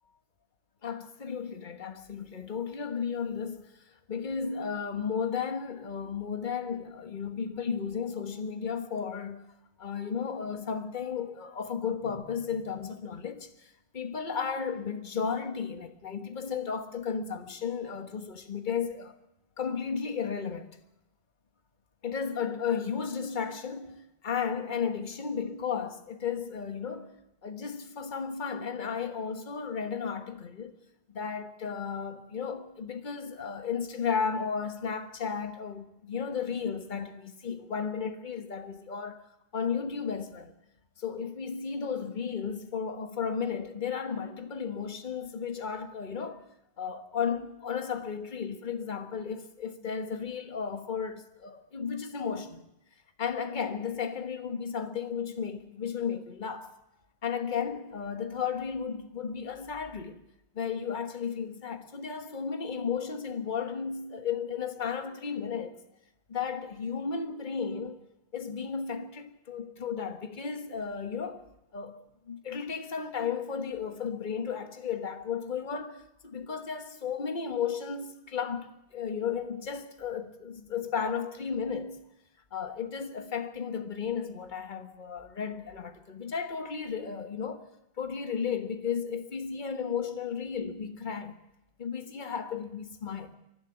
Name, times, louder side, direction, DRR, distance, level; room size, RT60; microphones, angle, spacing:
voice 1, 0.8-3.7 4.1-9.5 9.8-19.2 19.6-20.8 22.0-24.0 24.2-27.1 27.4-30.8 31.1-39.2 39.5-40.5 41.0-46.4 46.8-52.6 53.2-56.8 57.2-60.2 60.5-65.8 66.3-68.0 68.3-71.5 71.7-82.0 82.5-87.6 88.0-91.3 91.8-93.3, left 6 dB, 45° left, 1.4 m, -34 dB
24.0 x 12.5 x 9.9 m
omnidirectional pair, 1.1 m